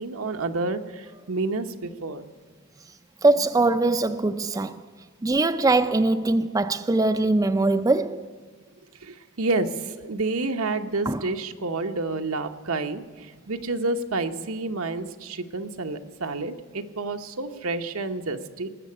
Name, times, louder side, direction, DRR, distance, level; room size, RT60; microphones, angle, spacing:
voice 1, 0.0-2.2 9.0-18.7, right 3 dB, 80° right, 1.1 m, -29 dB
voice 2, 3.2-4.8 5.2-8.3 11.1-11.2, right 2 dB, 15° right, 0.4 m, -22 dB
19.0 x 7.6 x 9.7 m
head